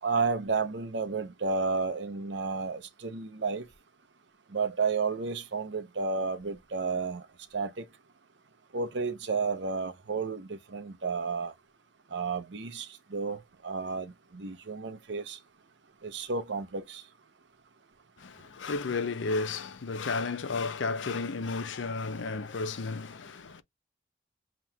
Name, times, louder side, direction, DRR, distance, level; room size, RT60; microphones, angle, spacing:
voice 1, 0.0-3.7 4.5-7.2 7.5-7.8 8.7-11.5 12.1-15.4 16.0-17.0, right 4 dB, 75° right, 0.8 m, -32 dB
voice 2, 18.2-23.6, left 4 dB, 85° left, 0.6 m, -33 dB
7.5 x 3.0 x 2.2 m
head